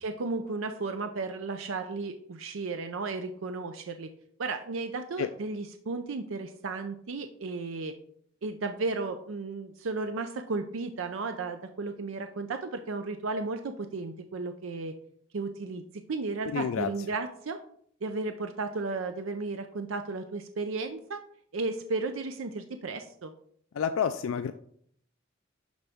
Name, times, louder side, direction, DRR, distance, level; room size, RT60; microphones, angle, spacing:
voice 1, 0.0-4.1 4.4-7.9 8.4-15.0 15.3-15.8 16.1-17.6 18.0-21.2 21.5-23.3, right 3 dB, 75° right, 7 dB, 0.5 m, -34 dB
voice 2, 16.5-16.9 23.7-24.5, left 7 dB, 90° left, 10 dB, 0.4 m, -29 dB
11.5 x 4.0 x 3.5 m, 0.64 s
head